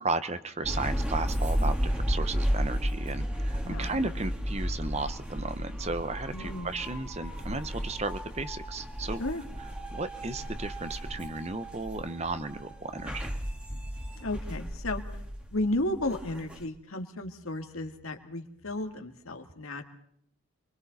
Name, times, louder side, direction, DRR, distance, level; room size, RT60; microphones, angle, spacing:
voice 1, 0.0-9.2 9.9-13.3, right 3 dB, 30° right, 11 dB, 0.9 m, -34 dB
sound 1, 0.6-16.6, equal, 5° right, 1.7 m, -33 dB
voice 2, 3.6-4.0 6.3-6.7 9.2-9.4 14.2-15.2 15.5-19.8, left 1 dB, 75° left, 5 dB, 2.1 m, -33 dB
28.5 x 23.0 x 4.1 m, 0.70 s
head